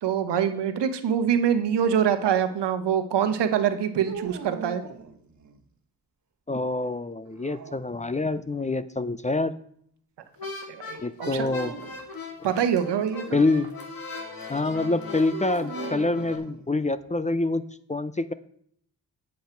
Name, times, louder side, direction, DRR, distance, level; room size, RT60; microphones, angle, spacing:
voice 1, 0.0-4.8 10.7-11.5 12.4-13.4, right 8 dB, 75° right, 9 dB, 1.1 m, -25 dB
sound 1, 4.0-5.6 7.3-8.4 11.2-12.0 15.3-16.9, right 6 dB, 45° right, 1.3 m, -40 dB
voice 2, 6.5-9.5 11.0-11.7 13.3-13.7 14.5-17.6 17.9-18.3, left 2 dB, 15° left, 14 dB, 0.6 m, -26 dB
sound 2, 10.4-16.4, left 3 dB, 55° left, 2.3 m, -38 dB
8.5 x 7.9 x 4.5 m, 0.65 s
supercardioid pair, 45°, 41 cm